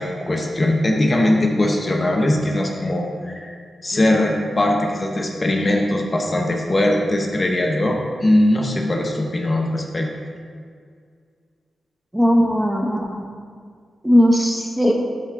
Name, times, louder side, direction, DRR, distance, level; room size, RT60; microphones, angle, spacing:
voice 1, 0.0-3.6 3.8-10.1, left 1 dB, 30° left, 1 dB, 0.9 m, -20 dB
voice 2, 12.1-13.2 14.0-14.9, equal, 10° right, 1 dB, 1.0 m, -17 dB
12.0 x 4.5 x 3.7 m, 2.1 s
cardioid pair, 85°, 0 cm